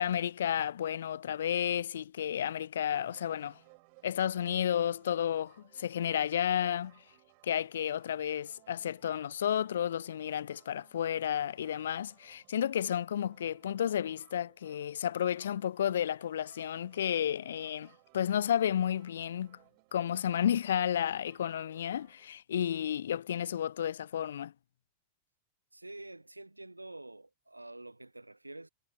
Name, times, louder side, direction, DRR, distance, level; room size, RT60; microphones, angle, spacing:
voice 1, 0.0-3.6 4.0-7.0 7.4-19.6 19.9-24.5, left 10 dB, 65° left, 0.3 m, -32 dB
sound 1, 2.7-22.3, right 40 dB or more, 45° right, 6.1 m, -64 dB
voice 2, 25.7-28.7, right 2 dB, 85° right, 0.8 m, -47 dB
figure-of-eight pair, 90°, 0 cm